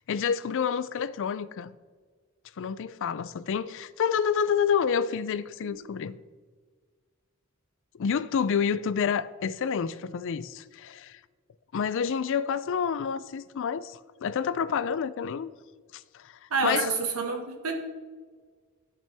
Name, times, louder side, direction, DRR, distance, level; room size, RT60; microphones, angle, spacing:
voice 1, 0.1-1.7 2.6-6.2 8.0-11.2 11.7-15.5 15.9-16.9, left 7 dB, 60° left, 0.4 m, -28 dB
voice 2, 16.5-17.7, right 4 dB, 80° right, 1.4 m, -28 dB
13.0 x 6.0 x 3.4 m
head